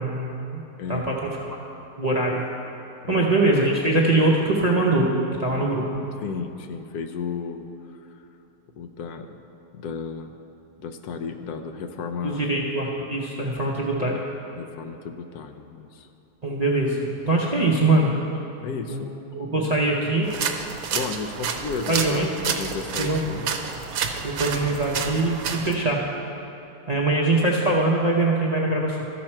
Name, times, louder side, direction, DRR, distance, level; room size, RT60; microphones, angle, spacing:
voice 1, 0.0-0.6 0.9-1.6 2.0-2.4 3.1-5.1 5.4-6.1 12.2-14.2 16.4-18.1 18.9-19.1 19.3-20.3 21.9-22.3 23.0-23.2 24.2-26.0 26.9-29.0, right 2 dB, 40° right, -4 dB, 0.6 m, -22 dB
voice 2, 0.8-1.2 3.0-3.4 6.2-8.2 8.8-9.4 9.7-10.3 10.8-12.6 14.5-16.1 18.6-19.1 20.9-23.6, left 5 dB, 75° left, 6 dB, 1.0 m, -33 dB
sound 1, 20.2-25.8, right 6 dB, 70° right, 1.1 m, -30 dB
14.0 x 5.9 x 4.4 m, 2.9 s
omnidirectional pair, 1.8 m